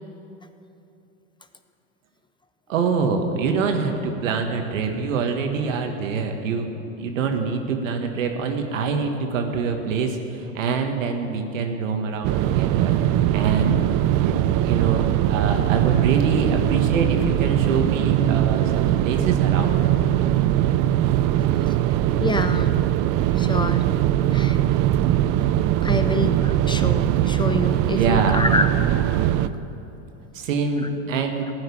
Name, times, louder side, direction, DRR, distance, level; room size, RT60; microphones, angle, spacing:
voice 1, 2.7-13.0 13.3-13.8 14.2-19.8 28.0-28.5 30.3-31.5, right 5 dB, 90° right, 4 dB, 1.7 m, -25 dB
sound 1, 12.2-29.5, right 12 dB, 50° right, 0.6 m, -21 dB
voice 2, 22.2-22.8 23.3-23.9 24.3-24.6 25.8-28.7, left 3 dB, 15° left, 9 dB, 0.4 m, -26 dB
14.5 x 6.4 x 9.7 m, 2.9 s
supercardioid pair, 110°, 38 cm